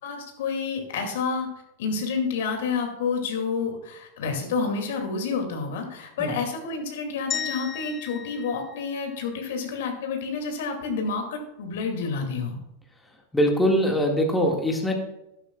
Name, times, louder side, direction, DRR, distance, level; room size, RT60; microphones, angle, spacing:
voice 1, 0.0-1.5 1.8-12.6, left 5 dB, 55° left, 4 dB, 2.3 m, -29 dB
sound 1, 7.3-9.6, left 7 dB, 25° left, 0.8 m, -35 dB
voice 2, 13.3-14.9, equal, 10° left, 2 dB, 1.8 m, -22 dB
14.0 x 12.0 x 2.3 m, 0.90 s
figure-of-eight pair, 90°, 0 cm